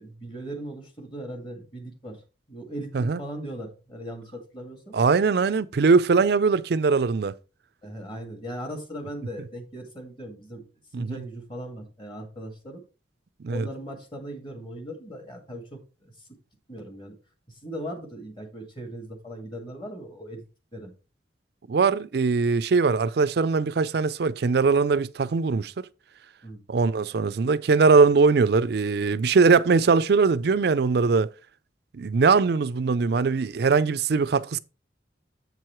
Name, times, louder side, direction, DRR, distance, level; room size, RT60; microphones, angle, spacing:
voice 1, 0.0-2.2 2.5-5.0 7.8-10.6 11.0-12.8 13.5-16.1 16.7-17.1 17.6-20.4 20.7-20.9 26.4-26.6, right 1 dB, 25° left, 2.0 m, -38 dB
voice 2, 4.9-7.3 10.9-11.2 13.4-13.7 21.7-25.7 26.7-31.3 31.9-34.6, right 4 dB, 60° right, 0.4 m, -21 dB
8.1 x 4.7 x 4.5 m
head